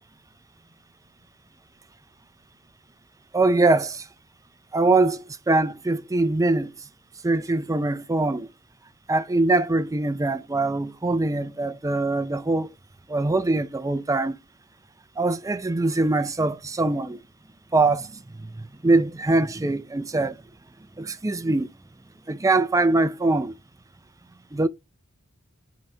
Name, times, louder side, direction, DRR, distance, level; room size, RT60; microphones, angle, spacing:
voice 1, 3.3-4.1 4.7-6.7 7.2-8.5 9.1-12.7 13.1-14.4 15.2-17.2 17.7-20.4 21.0-21.7 22.3-23.5 24.5-24.7, right 2 dB, 15° right, 0.4 m, -23 dB
9.5 x 4.9 x 3.3 m
head